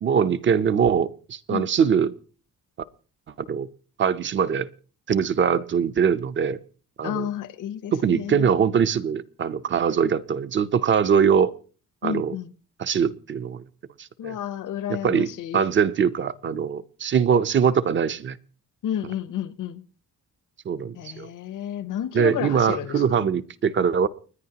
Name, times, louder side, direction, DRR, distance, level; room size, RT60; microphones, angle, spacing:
voice 1, 0.0-2.1 3.5-3.7 4.0-4.7 5.1-6.6 7.0-7.3 7.9-11.5 12.0-12.3 12.8-13.6 14.0-14.4 15.0-15.3 15.5-18.4 20.7-21.3 22.1-24.1, right 7 dB, 35° right, 0.6 m, -22 dB
voice 2, 7.0-8.5 12.0-12.5 14.2-15.6 18.8-19.8 20.9-23.3, left 10 dB, 65° left, 0.9 m, -31 dB
30.0 x 10.5 x 2.9 m
wide cardioid pair, 155°, 33 cm